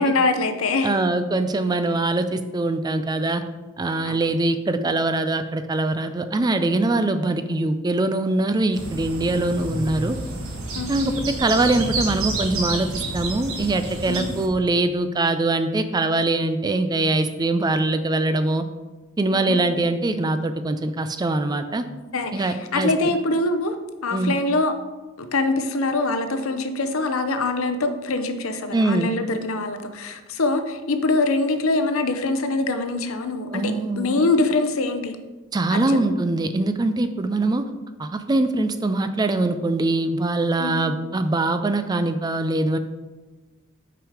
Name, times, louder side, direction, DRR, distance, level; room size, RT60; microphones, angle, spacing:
voice 1, 0.0-1.0 4.0-4.2 10.7-10.9 14.1-14.3 19.3-19.6 22.1-23.8 24.0-24.7 25.2-35.1 35.7-36.0 40.6-40.8, left 2 dB, 70° left, 8 dB, 0.7 m, -24 dB
voice 2, 0.8-3.4 3.8-10.2 10.9-11.1 11.4-18.6 19.2-21.8 22.3-22.9 24.1-24.3 28.7-29.1 33.5-34.2 35.5-37.6 38.0-42.8, right 2 dB, 20° right, 9 dB, 0.3 m, -23 dB
sound 1, 8.7-14.5, right 2 dB, 70° right, 1.3 m, -29 dB
6.1 x 5.0 x 4.9 m, 1.2 s
head